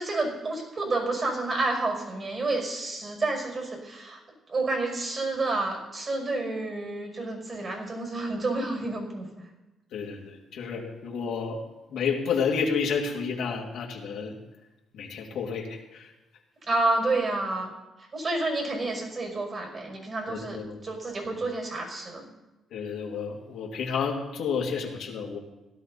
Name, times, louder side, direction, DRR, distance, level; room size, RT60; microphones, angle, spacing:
voice 1, 0.0-4.2 4.5-9.4 16.6-17.7 18.1-22.3, right 2 dB, 40° right, 1 dB, 5.9 m, -29 dB
voice 2, 9.9-11.6 11.9-14.4 14.9-16.1 20.3-20.8 22.7-25.4, left 6 dB, 75° left, -1 dB, 2.5 m, -30 dB
16.5 x 12.0 x 4.1 m, 1.0 s
cardioid pair, 90°, 0 cm